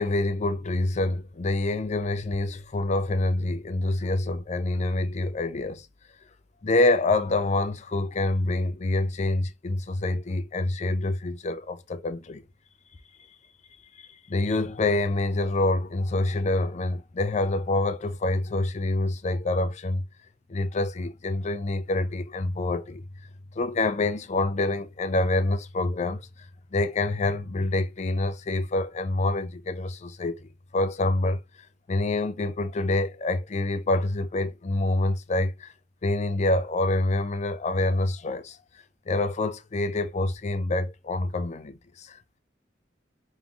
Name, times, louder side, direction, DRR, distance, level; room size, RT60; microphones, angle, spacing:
voice 1, 0.0-5.9 6.6-12.4 14.0-20.0 20.5-23.0 23.6-26.3 26.7-31.4 31.9-35.7 36.0-38.6 39.1-42.4, left 2 dB, 40° left, 0.5 m, -26 dB
3.6 x 3.1 x 3.8 m
head